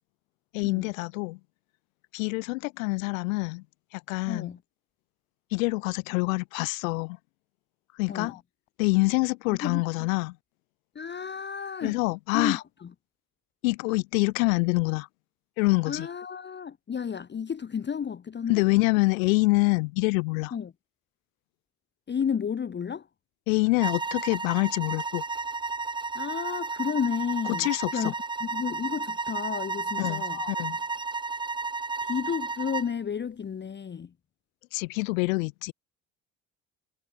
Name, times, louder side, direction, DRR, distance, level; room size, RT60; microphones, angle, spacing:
voice 1, 0.5-1.4 2.1-3.6 3.9-4.5 5.5-7.2 7.9-8.4 8.8-10.4 11.8-12.6 13.6-15.1 15.6-16.1 18.5-20.5 23.5-25.2 27.6-28.1 30.0-30.8 34.7-35.7, left 25 dB, 80° left, 0.6 m, -26 dB
voice 2, 4.3-4.6 8.1-8.3 9.6-10.1 10.9-12.0 12.3-12.9 15.9-18.6 20.5-20.7 22.1-23.1 26.1-28.1 28.4-30.4 32.0-34.1, left 7 dB, 25° left, 0.9 m, -32 dB
sound 1, 23.8-32.9, right 4 dB, 10° right, 0.6 m, -33 dB
hypercardioid pair, 60°, 39 cm